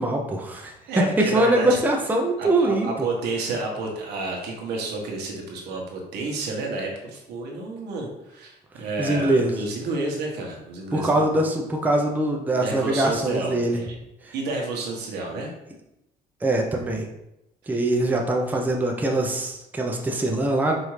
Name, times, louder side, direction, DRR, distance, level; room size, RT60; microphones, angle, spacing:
voice 1, 0.0-0.7 1.2-2.9 9.0-9.5 10.9-13.8 14.3-14.4 16.4-17.1 17.7-20.8, right 1 dB, 10° right, 0 dB, 0.5 m, -23 dB
voice 2, 0.9-1.8 2.4-11.4 12.6-13.9 14.3-15.5 17.7-17.8, right 3 dB, 80° right, 0 dB, 1.1 m, -30 dB
4.9 x 2.6 x 3.1 m, 0.86 s
cardioid pair, 110°, 17 cm